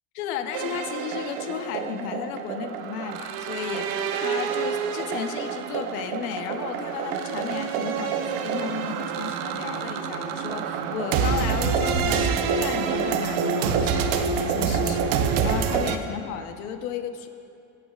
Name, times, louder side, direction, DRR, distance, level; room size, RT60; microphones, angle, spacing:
voice 1, 0.1-17.3, left 7 dB, 80° left, 7 dB, 1.1 m, -34 dB
sound 1, 0.5-16.0, right 6 dB, 60° right, 0.9 m, -27 dB
24.5 x 8.5 x 2.5 m, 2.5 s
cardioid pair, 170°, 42 cm